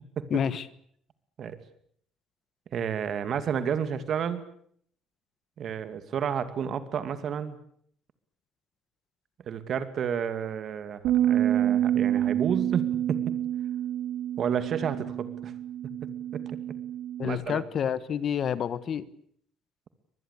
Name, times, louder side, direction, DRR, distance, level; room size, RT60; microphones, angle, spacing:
voice 1, 0.3-0.6 17.2-19.1, left 8 dB, 40° left, 16 dB, 1.3 m, -28 dB
voice 2, 2.7-4.4 5.6-7.6 9.5-13.3 14.4-15.5 16.3-16.6 17.2-17.6, right 7 dB, 45° right, 11 dB, 2.5 m, -31 dB
Bass guitar, 11.0-17.3, right 11 dB, 75° right, 3.3 m, -28 dB
24.5 x 20.5 x 8.4 m, 0.64 s
cardioid pair, 155°, 0 cm